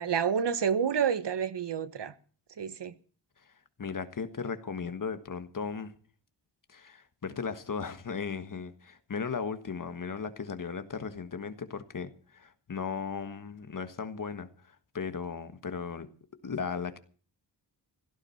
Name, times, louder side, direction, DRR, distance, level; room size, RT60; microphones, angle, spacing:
voice 1, 0.0-2.1 2.6-2.9, right 7 dB, 70° right, 1.2 m, -29 dB
voice 2, 3.8-5.9 6.7-16.1 16.4-17.0, left 5 dB, 45° left, 1.5 m, -36 dB
16.5 x 12.5 x 5.7 m
wide cardioid pair, 160°, 43 cm